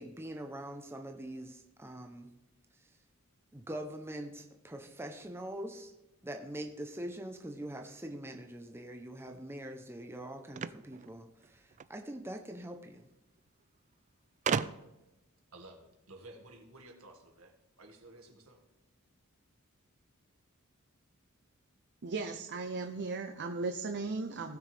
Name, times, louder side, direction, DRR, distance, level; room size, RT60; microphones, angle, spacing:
voice 1, 0.0-2.3 3.5-5.9 6.2-13.1, right 1 dB, 10° right, 4 dB, 0.8 m, -43 dB
sound 1, 10.5-11.9 13.0-13.1 13.4-13.5 14.4-15.1, right 7 dB, 35° right, 0.3 m, -35 dB
voice 2, 15.5-18.6, right 2 dB, 70° right, 2 dB, 2.0 m, -54 dB
voice 3, 22.0-24.6, right 3 dB, 55° right, 5 dB, 0.7 m, -36 dB
19.0 x 6.3 x 3.4 m, 0.98 s
head